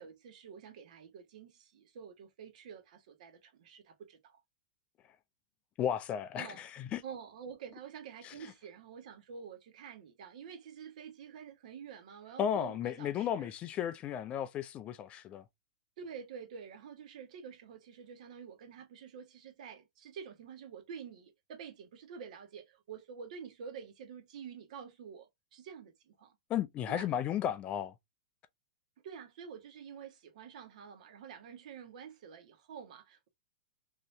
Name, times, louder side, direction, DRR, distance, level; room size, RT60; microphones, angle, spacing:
voice 1, 0.0-4.4 6.4-6.6 7.0-13.5 16.0-26.3 26.9-27.1 29.0-33.3, right 7 dB, 65° right, 1.1 m, -48 dB
voice 2, 5.8-7.0 8.2-8.3 12.4-15.4 26.5-27.9, left 9 dB, 30° left, 0.4 m, -34 dB
2.8 x 2.7 x 3.2 m
hypercardioid pair, 135°, 4 cm